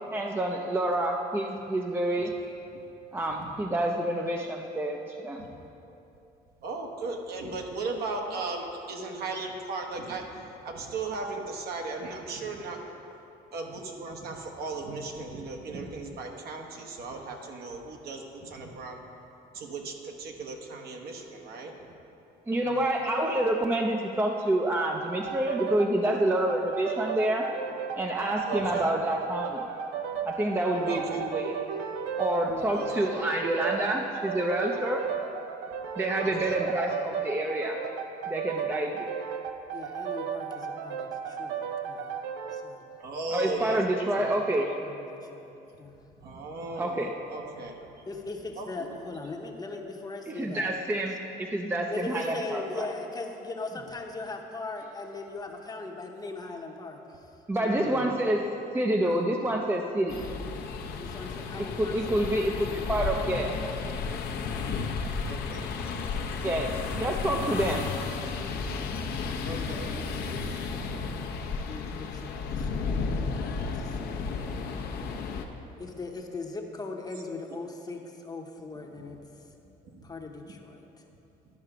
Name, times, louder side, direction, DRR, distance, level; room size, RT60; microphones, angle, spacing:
voice 1, 0.1-2.3 3.1-5.5 22.5-27.5 28.0-29.7 30.2-31.5 32.2-35.0 36.0-37.8 38.3-39.1 43.3-44.7 46.8-47.1 50.3-52.9 57.5-60.2 61.6-63.6 66.4-67.9, right 1 dB, 15° right, 2 dB, 0.5 m, -28 dB
voice 2, 6.6-10.3 10.6-12.8 13.5-19.0 19.5-21.7 28.5-28.9 30.9-31.2 32.7-33.1 36.2-36.6 43.0-44.4 46.2-47.9 48.6-49.0 57.8-58.2 65.2-66.9 69.4-69.9 72.8-73.0 75.6-75.8 79.0-79.1 79.8-80.1, right 3 dB, 65° right, 2 dB, 1.1 m, -37 dB
sound 1, 25.3-42.7, right 7 dB, 90° right, 0.5 m, -35 dB
voice 3, 33.0-33.3 38.5-38.7 39.7-42.2 42.5-42.8 44.8-46.0 48.1-50.7 51.9-57.3 57.6-58.0 59.0-59.3 61.0-62.3 62.7-62.9 68.0-71.0 71.7-74.5 75.8-79.2 80.0-81.0, left 3 dB, 25° left, 2 dB, 0.8 m, -40 dB
sound 2, 60.1-75.4, left 4 dB, 70° left, 0.8 m, -33 dB
12.0 x 5.5 x 5.0 m, 2.9 s
cardioid pair, 110°, 17 cm